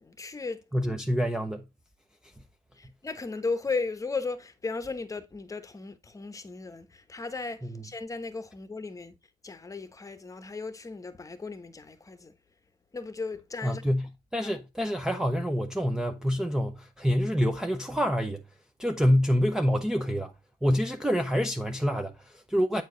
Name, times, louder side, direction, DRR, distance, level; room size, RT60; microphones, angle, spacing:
voice 1, 0.0-0.6 2.7-9.2 9.4-12.4 12.9-13.8 14.4-14.5, left 4 dB, 20° left, 1.0 m, -36 dB
voice 2, 0.7-1.6 13.6-14.1 14.3-18.4 18.8-20.3 20.6-22.8, equal, 5° right, 0.6 m, -26 dB
8.2 x 4.7 x 3.8 m
cardioid pair, 110°, 17 cm